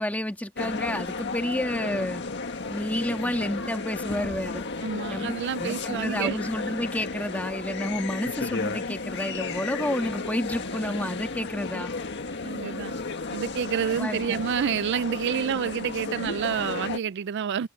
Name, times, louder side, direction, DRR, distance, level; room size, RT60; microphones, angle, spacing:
voice 1, 0.0-2.2 2.7-4.7 5.1-5.3 5.6-11.9 14.0-14.4, left 1 dB, 5° left, 1.6 m, -30 dB
sound 1, 0.6-17.0, left 3 dB, 55° left, 1.7 m, -33 dB
voice 2, 4.8-6.4 12.4-12.9 13.3-17.7, right 8 dB, 55° right, 0.3 m, -28 dB
head